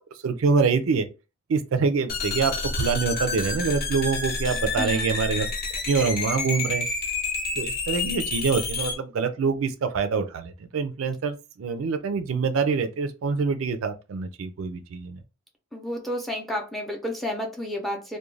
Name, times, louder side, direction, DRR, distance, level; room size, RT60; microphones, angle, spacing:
voice 1, 0.2-1.1 1.5-5.5 5.9-6.9 7.6-15.2, right 5 dB, 75° right, 0.4 m, -25 dB
sound 1, 2.1-9.0, left 3 dB, 45° left, 0.7 m, -29 dB
voice 2, 4.8-5.1 15.7-18.2, left 1 dB, ahead, 0.5 m, -31 dB
2.4 x 2.2 x 3.1 m
head